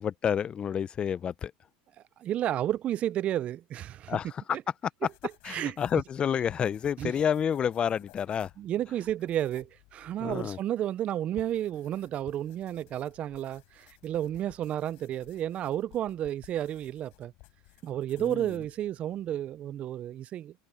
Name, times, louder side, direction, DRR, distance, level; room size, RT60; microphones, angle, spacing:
voice 1, 0.0-1.5 4.1-4.6 5.4-8.5 10.2-10.6 18.2-18.5, left 8 dB, 25° left, 0.5 m, -29 dB
voice 2, 2.2-4.2 4.5-4.6 5.5-5.7 7.0-7.1 8.6-17.3 17.8-20.5, right 11 dB, 35° right, 0.4 m, -32 dB
sound 1, 5.0-19.9, left 29 dB, 60° left, 6.7 m, -58 dB
supercardioid pair, 130°, 4 cm